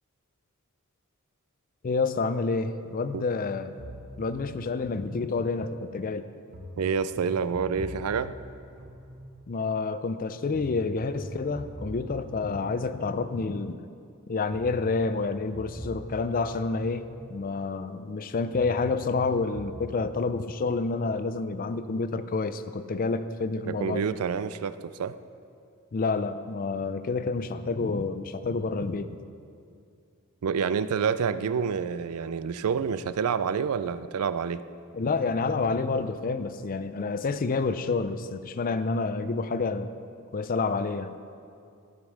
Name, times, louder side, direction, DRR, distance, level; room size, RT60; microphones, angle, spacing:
voice 1, 1.8-3.8 4.2-6.3 9.5-13.8 14.3-24.1 25.9-29.2 34.9-39.9 40.3-41.2, left 4 dB, 40° left, 12 dB, 0.4 m, -29 dB
sound 1, 3.8-5.7 6.5-9.6 10.5-13.6 14.5-17.6 18.5-19.9, equal, 40° right, 1.3 m, -43 dB
voice 2, 6.8-8.3 23.7-24.7 25.0-25.1 30.4-34.6, right 6 dB, 90° right, 14 dB, 0.4 m, -28 dB
13.0 x 5.2 x 6.4 m, 2.4 s
head